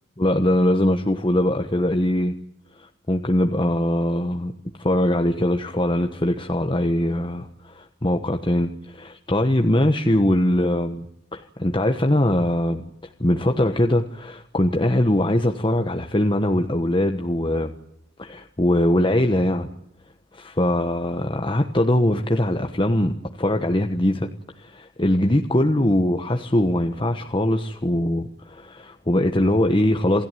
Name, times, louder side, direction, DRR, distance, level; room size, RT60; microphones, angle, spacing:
voice 1, 0.2-2.3 2.8-4.5 4.8-11.0 11.3-12.9 13.2-17.7 18.2-19.7 20.3-24.3 24.6-30.2, left 1 dB, 25° left, 5 dB, 1.3 m, -21 dB
28.0 x 17.0 x 9.3 m, 0.79 s
head